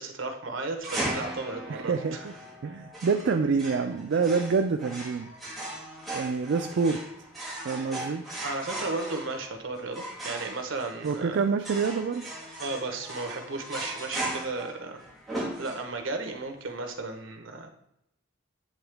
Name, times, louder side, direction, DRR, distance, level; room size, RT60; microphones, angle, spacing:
voice 1, 0.0-2.2 8.4-11.4 12.6-15.0 15.3-17.7, right 3 dB, 75° right, 5 dB, 1.1 m, -34 dB
sound 1, 0.8-16.2, right 1 dB, ahead, 1.6 m, -38 dB
voice 2, 1.7-2.3 2.6-5.3 6.1-7.0 7.6-8.2 11.0-12.3, right 5 dB, 60° right, 5 dB, 0.4 m, -27 dB
9.0 x 3.8 x 3.4 m, 0.81 s
head